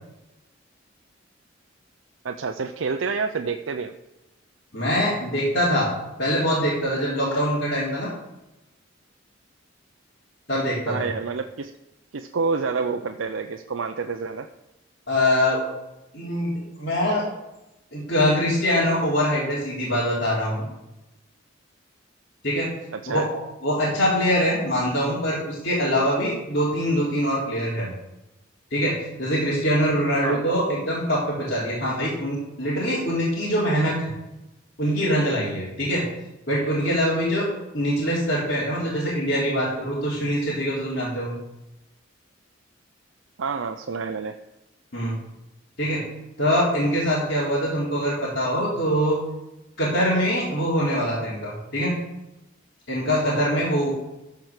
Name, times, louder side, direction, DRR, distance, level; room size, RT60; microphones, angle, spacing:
voice 1, 2.2-3.9 10.9-11.7 12.1-14.5 22.9-23.3 30.2-30.4 43.4-44.4, right 4 dB, 80° right, 6 dB, 0.6 m, -28 dB
voice 2, 4.7-5.9 6.2-8.1 10.5-11.0 15.1-15.7 16.1-17.3 17.9-20.7 22.4-22.7 23.1-23.3 23.6-27.9 28.7-34.1 34.8-36.1 36.5-37.5 37.7-41.3 44.9-45.2 45.8-46.0 46.4-49.2 49.8-52.0 52.9-53.9, equal, 55° left, -10 dB, 3.7 m, -23 dB
13.5 x 4.8 x 6.5 m, 0.98 s
head